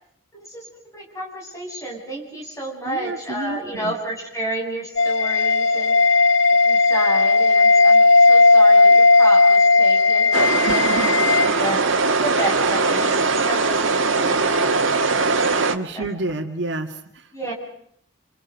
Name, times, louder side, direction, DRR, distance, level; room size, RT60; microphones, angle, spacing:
voice 1, 0.3-5.9 6.6-11.8 12.2-15.7 15.9-16.0 17.3-17.5, right 1 dB, 15° left, -3 dB, 8.0 m, -31 dB
voice 2, 2.8-3.9 10.7-11.1 15.7-17.3, right 2 dB, 65° right, 4 dB, 2.1 m, -29 dB
sound 1, 5.0-11.5, left 3 dB, 80° left, 1.4 m, -15 dB
sound 2, 10.3-15.8, right 3 dB, 80° right, 1.8 m, -20 dB
30.0 x 28.0 x 5.4 m, 0.69 s
head